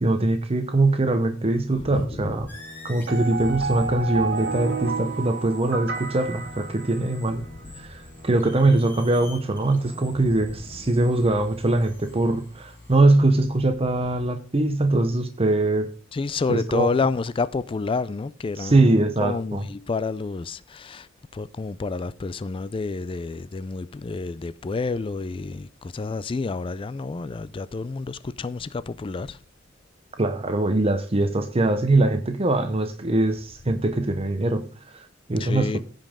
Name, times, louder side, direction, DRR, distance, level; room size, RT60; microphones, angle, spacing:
voice 1, 0.0-2.5 2.8-7.4 7.7-15.9 16.5-16.9 18.6-19.7 30.2-35.8, right 2 dB, 30° right, 0.8 m, -22 dB
voice 2, 1.8-2.3 10.2-10.3 16.1-29.4 35.4-35.8, left 4 dB, 25° left, 0.3 m, -29 dB
sound 1, 2.5-13.0, left 1 dB, 10° left, 4.3 m, -44 dB
sound 2, 3.1-7.4, right 4 dB, 60° right, 1.2 m, -31 dB
15.5 x 5.3 x 3.6 m
head